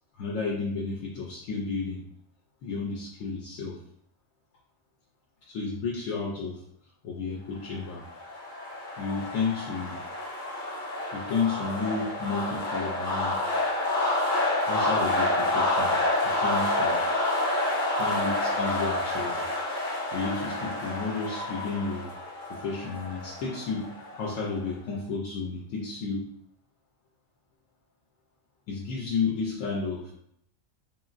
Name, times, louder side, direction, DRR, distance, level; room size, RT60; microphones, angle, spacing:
voice 1, 0.1-2.1 2.6-3.8 5.5-6.6 7.0-8.0 9.0-10.0 11.1-13.7 14.7-17.1 18.0-22.1 22.5-26.3 28.7-30.1, left 4 dB, 80° left, -3 dB, 0.9 m, -32 dB
sound 1, 7.8-24.5, left 2 dB, 55° left, 0.6 m, -29 dB
2.9 x 2.5 x 2.4 m, 0.73 s
omnidirectional pair, 1.3 m